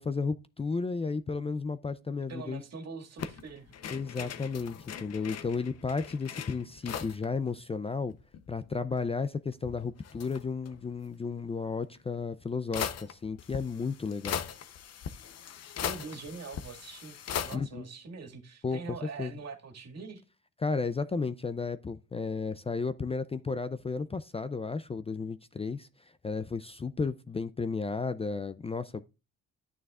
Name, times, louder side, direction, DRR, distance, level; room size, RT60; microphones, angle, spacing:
voice 1, 0.0-2.6 3.9-8.2 8.5-14.4 17.5-17.9 18.6-19.3 20.6-25.9 26.2-29.1, left 4 dB, 20° left, 0.4 m, -33 dB
voice 2, 2.3-3.7 15.8-20.2, right 4 dB, 60° right, 2.0 m, -43 dB
sound 1, 3.2-7.3 7.6-7.7 7.9-8.9 9.5-10.8 12.0-12.1 12.7-17.6, left 8 dB, 55° left, 0.8 m, -39 dB
11.0 x 9.2 x 2.4 m
cardioid pair, 90°, 30 cm